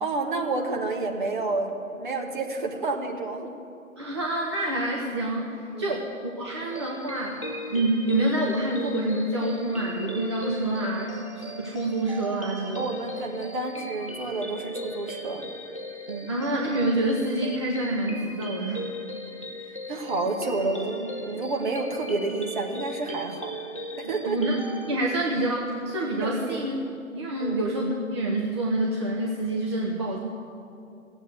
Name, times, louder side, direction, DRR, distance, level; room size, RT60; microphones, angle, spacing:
voice 1, 0.0-3.6 5.7-5.9 12.8-15.5 16.1-16.3 19.9-23.5 24.0-24.5 26.2-26.6 27.4-27.5, right 3 dB, 35° right, 2 dB, 1.5 m, -30 dB
voice 2, 4.0-12.9 16.3-18.9 24.3-24.6 24.9-26.8 27.1-30.2, right 1 dB, 20° right, -2 dB, 0.8 m, -27 dB
sound 1, 6.7-25.0, equal, 25° left, 0.4 m, -38 dB
16.0 x 8.0 x 8.2 m, 2.6 s
figure-of-eight pair, 140°, 42 cm